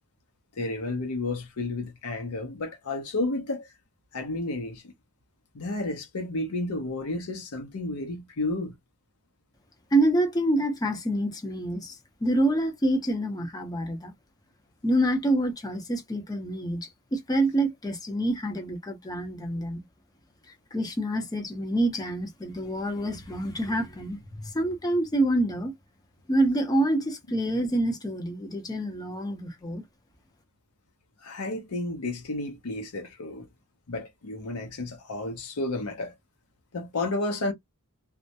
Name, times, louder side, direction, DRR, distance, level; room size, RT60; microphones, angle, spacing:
voice 1, 0.6-3.7 4.1-4.9 5.5-8.8 31.2-33.5 33.9-36.1 36.7-37.5, left 2 dB, 85° left, 0.7 m, -32 dB
voice 2, 9.9-14.1 14.8-19.8 20.7-25.7 26.3-29.8, right 1 dB, 15° left, 0.6 m, -27 dB
2.2 x 2.0 x 2.7 m
head